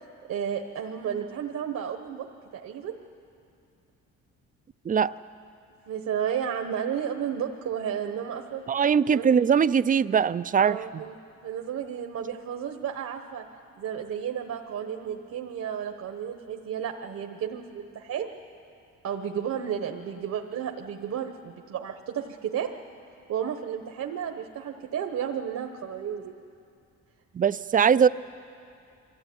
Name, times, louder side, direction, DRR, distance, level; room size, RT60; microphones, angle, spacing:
voice 1, 0.3-2.3 2.5-2.9 5.9-8.6 9.1-9.3 10.6-11.1 11.4-13.4 13.7-18.3 19.0-22.7 23.3-26.3 27.8-28.0, right 8 dB, 65° right, 4 dB, 1.2 m, -32 dB
voice 2, 8.7-11.0 27.3-28.1, right 7 dB, 30° right, 15 dB, 0.5 m, -21 dB
23.5 x 14.0 x 9.4 m, 2.5 s
cardioid pair, 90°, 30 cm